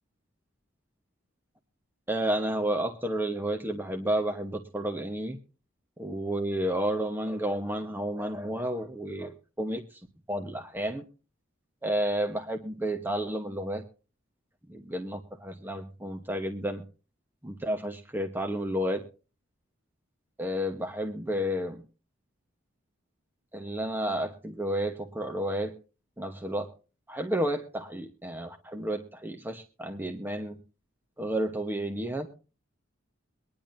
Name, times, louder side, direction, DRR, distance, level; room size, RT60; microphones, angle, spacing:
voice 1, 2.1-5.4 6.0-10.0 10.3-11.0 11.8-13.8 14.7-16.8 17.4-19.0 20.4-21.8 23.5-25.7 26.2-26.7 27.1-30.6 31.2-32.3, right 1 dB, 10° right, 4 dB, 1.0 m, -31 dB
23.0 x 10.5 x 2.6 m, 0.34 s
head